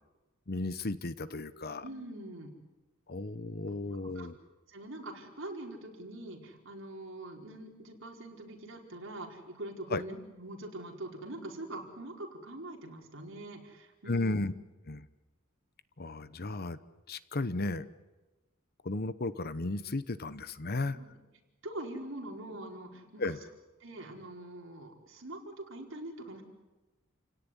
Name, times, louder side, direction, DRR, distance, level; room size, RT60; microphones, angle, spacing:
voice 1, 0.5-1.8 3.1-4.4 9.9-10.0 14.1-14.5 14.9-15.1 16.0-16.8 17.1-17.9 18.8-21.0 23.2-23.4, left 2 dB, 50° left, 14 dB, 1.0 m, -34 dB
voice 2, 1.8-2.5 3.7-3.8 4.1-4.3 4.7-14.3 20.9-21.1 21.6-23.2 23.8-26.4, right 1 dB, 65° right, 1 dB, 4.7 m, -43 dB
29.5 x 17.5 x 9.9 m, 1.2 s
head